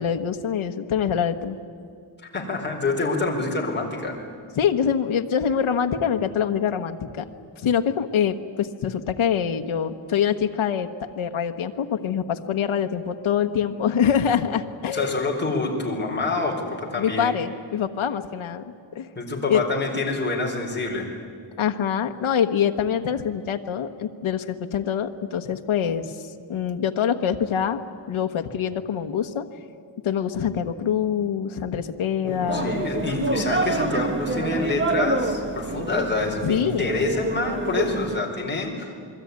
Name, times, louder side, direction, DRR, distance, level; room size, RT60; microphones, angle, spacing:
voice 1, 0.0-1.6 4.6-7.3 7.6-10.9 11.2-15.2 17.0-18.6 18.9-19.1 19.5-19.6 21.6-27.8 28.1-29.5 30.0-32.8 36.4-36.9, left 8 dB, 85° left, 5 dB, 1.3 m, -25 dB
voice 2, 2.3-4.2 14.9-17.3 19.2-21.1 32.2-38.9, left 3 dB, 20° left, -1 dB, 4.4 m, -27 dB
sound 1, 32.2-38.2, right 2 dB, 25° right, 1.8 m, -27 dB
28.0 x 22.0 x 9.6 m, 2.3 s
wide cardioid pair, 175°, 48 cm